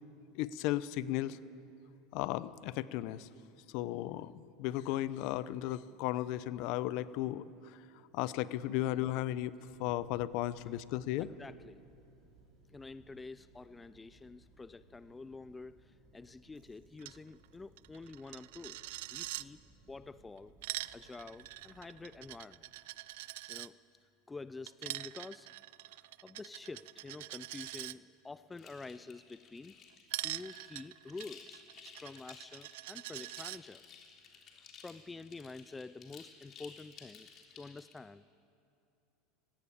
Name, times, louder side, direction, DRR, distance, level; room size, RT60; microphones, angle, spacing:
voice 1, 0.3-1.4 2.1-3.3 3.7-7.4 8.1-9.5 9.8-11.3, left 14 dB, 60° left, 16 dB, 0.8 m, -35 dB
sound 1, 9.7-22.4, right 3 dB, 35° right, 4.7 m, -64 dB
voice 2, 11.2-11.8 12.7-15.8 16.1-19.6 19.9-20.5 20.9-22.7 23.1-23.8 24.3-25.5 25.9-29.8 30.2-33.8 34.5-37.3 37.5-38.2, left 3 dB, 15° left, 15 dB, 0.4 m, -48 dB
Coin (dropping), 17.0-17.2 17.4-17.5 17.8-19.4 20.4-23.7 24.7-27.9 30.1-33.6, right 18 dB, 75° right, 0.5 m, -44 dB
sound 2, 28.5-38.0, left 6 dB, 40° left, 3.4 m, -56 dB
18.5 x 17.0 x 8.8 m, 2.6 s
supercardioid pair, 130°, 0 cm